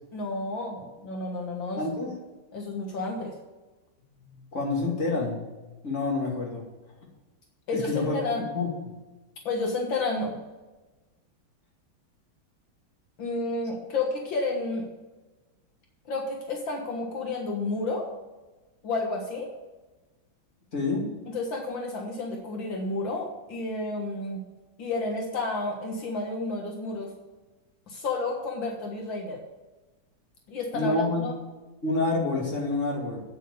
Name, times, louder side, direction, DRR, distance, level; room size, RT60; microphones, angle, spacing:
voice 1, 0.1-1.8 2.5-3.3 7.7-8.4 9.5-10.4 13.2-14.9 16.1-18.1 18.8-19.5 21.3-24.4 24.8-27.1 27.9-29.4 30.5-31.3, left 3 dB, 75° left, 1 dB, 2.2 m, -31 dB
voice 2, 1.8-2.1 4.2-5.4 5.8-6.6 7.7-8.2 8.5-8.7 20.7-21.1 30.7-31.2 31.8-33.2, left 3 dB, 40° left, -2 dB, 2.8 m, -28 dB
8.7 x 8.3 x 6.8 m, 1.2 s
omnidirectional pair, 2.1 m